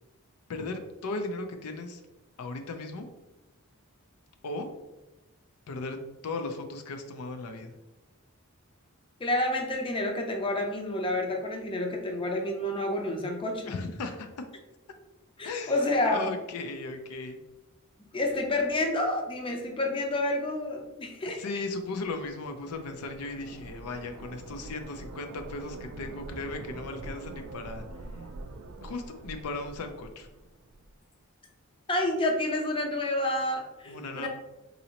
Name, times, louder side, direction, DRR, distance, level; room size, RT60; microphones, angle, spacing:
voice 1, 0.5-2.0 2.4-3.1 4.4-4.7 5.7-6.0 6.2-7.8 13.6-14.3 15.4-17.4 21.2-27.8 28.8-30.3 33.9-34.3, left 3 dB, 85° left, 6 dB, 0.4 m, -36 dB
voice 2, 9.2-13.7 15.4-16.3 18.1-21.4 31.9-34.3, left 1 dB, 25° left, 2 dB, 0.5 m, -29 dB
sound 1, 21.7-30.9, right 2 dB, 70° right, 0.4 m, -45 dB
4.0 x 2.7 x 2.8 m, 1.0 s
head